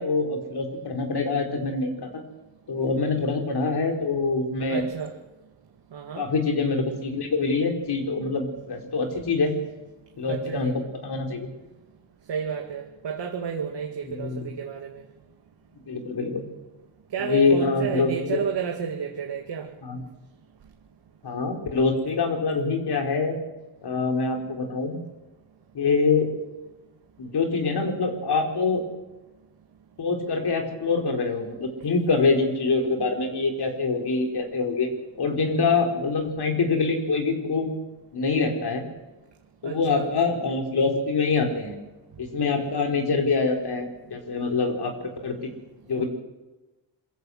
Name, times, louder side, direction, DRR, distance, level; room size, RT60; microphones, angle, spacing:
voice 1, 0.0-2.2 2.7-4.9 6.2-9.5 10.2-10.7 11.0-11.5 14.1-14.5 15.9-16.4 17.2-18.4 19.8-20.0 21.2-23.4 23.8-25.0 25.7-26.3 27.2-28.8 30.0-34.9 35.2-37.7 38.1-38.8 39.6-41.8 42.2-45.5 45.9-46.0, left 4 dB, 55° left, 3 dB, 4.1 m, -25 dB
voice 2, 4.7-5.1 5.9-6.2 10.3-10.7 12.3-15.0 17.1-19.7 39.6-40.1 45.9-46.0, right 7 dB, 60° right, 1 dB, 2.3 m, -31 dB
22.5 x 15.0 x 7.8 m, 1.1 s
cardioid pair, 80°, 47 cm